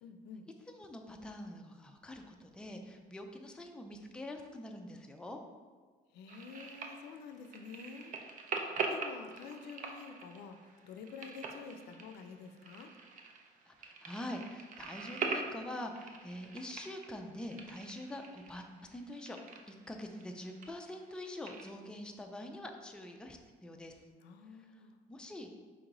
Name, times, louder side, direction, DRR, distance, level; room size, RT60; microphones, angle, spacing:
voice 1, 0.0-0.5 6.1-8.2 8.9-12.9 24.2-25.0, left 5 dB, 80° left, 7 dB, 0.4 m, -49 dB
voice 2, 0.7-5.4 13.7-19.4 19.7-24.0 24.6-24.7 25.1-25.5, left 1 dB, 5° left, 3 dB, 0.4 m, -45 dB
sound 1, 6.3-21.7, right 4 dB, 50° right, 0.5 m, -43 dB
4.4 x 3.0 x 3.8 m, 1.5 s
cardioid pair, 110°, 17 cm